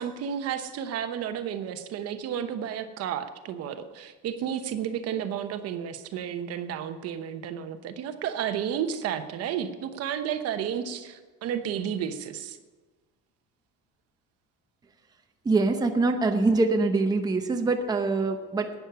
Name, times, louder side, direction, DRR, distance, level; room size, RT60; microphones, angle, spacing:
voice 1, 0.0-12.6, right 9 dB, 55° right, 9 dB, 1.0 m, -32 dB
voice 2, 15.4-18.7, right 3 dB, 15° right, 4 dB, 0.8 m, -24 dB
11.5 x 9.4 x 6.8 m, 1.3 s
cardioid pair, 155°, 30 cm